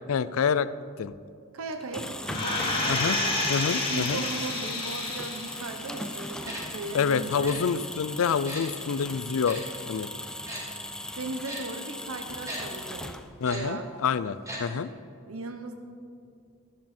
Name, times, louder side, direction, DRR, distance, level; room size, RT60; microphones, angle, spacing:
voice 1, 0.1-0.7 1.0-1.1 2.9-3.2 3.5-4.2 6.9-10.1 13.4-14.9, left 6 dB, 70° left, 15 dB, 0.4 m, -27 dB
voice 2, 1.5-3.4 3.9-7.6 11.1-13.9 15.3-15.7, right 3 dB, 70° right, 6 dB, 0.9 m, -37 dB
sound 1, 1.7-13.6, left 1 dB, 5° left, 0.5 m, -38 dB
sound 2, 2.3-5.7 6.1-6.2, left 2 dB, 25° left, 2.4 m, -29 dB
Tick-tock, 6.4-6.6 7.4-7.6 8.4-8.6 9.4-9.6 10.5-10.6 11.4-11.6 12.5-12.6 13.4-13.6 14.4-14.6 14.9-15.0, right 1 dB, 15° right, 3.6 m, -37 dB
12.5 x 12.0 x 4.3 m, 2.4 s
head